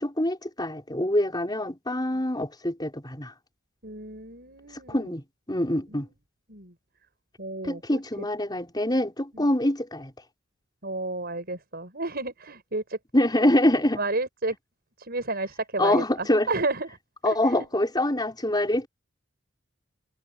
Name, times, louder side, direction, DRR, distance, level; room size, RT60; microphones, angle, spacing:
voice 1, 0.0-3.3 4.9-6.1 7.6-10.1 13.1-14.0 15.8-16.5 17.2-18.9, left 1 dB, 20° left, 6.1 m, -25 dB
voice 2, 3.8-5.1 5.9-6.0 6.5-6.7 7.4-8.0 9.3-9.5 10.8-13.0 13.9-14.6 15.0-16.9 17.2-17.7, right 2 dB, 50° right, 7.1 m, -32 dB
head